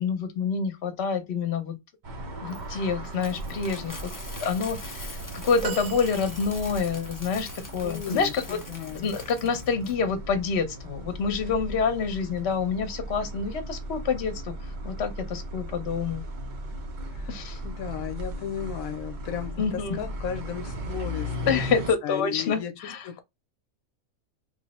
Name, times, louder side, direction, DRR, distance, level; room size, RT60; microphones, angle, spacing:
voice 1, 0.0-1.8 2.4-4.1 4.4-8.6 8.9-14.5 14.8-16.2 17.3-17.6 19.6-20.0 21.5-23.1, left 5 dB, 55° left, 1.0 m, -27 dB
sound 1, 2.0-21.9, equal, 55° right, 0.5 m, -37 dB
Coin (dropping), 2.5-9.9, left 2 dB, 25° left, 0.4 m, -43 dB
sound 2, 5.6-7.0 7.8-7.9, right 8 dB, 75° right, 1.1 m, -38 dB
voice 2, 7.8-9.2 17.1-21.7 22.0-23.2, left 8 dB, 80° left, 1.0 m, -35 dB
3.3 x 2.0 x 4.1 m
omnidirectional pair, 1.4 m